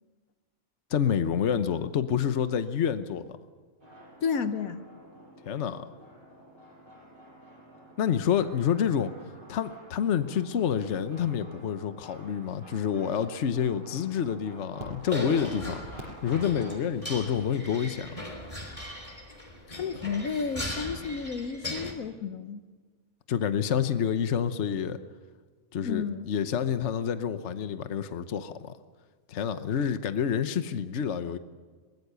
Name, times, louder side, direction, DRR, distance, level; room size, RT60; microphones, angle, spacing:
voice 1, 0.9-3.3 5.5-5.9 8.0-9.1 9.5-18.2 23.3-25.0 25.7-28.7 29.3-31.4, left 8 dB, 60° left, 10 dB, 1.2 m, -28 dB
sound 1, 3.8-16.7, right 1 dB, 35° right, 6.9 m, -49 dB
voice 2, 4.2-4.8 19.7-22.6 25.8-26.3, left 5 dB, 80° left, 11 dB, 1.4 m, -32 dB
sound 2, 15.0-21.9, left 1 dB, 25° left, 3.2 m, -38 dB
23.0 x 19.5 x 6.9 m, 1.5 s
omnidirectional pair, 1.5 m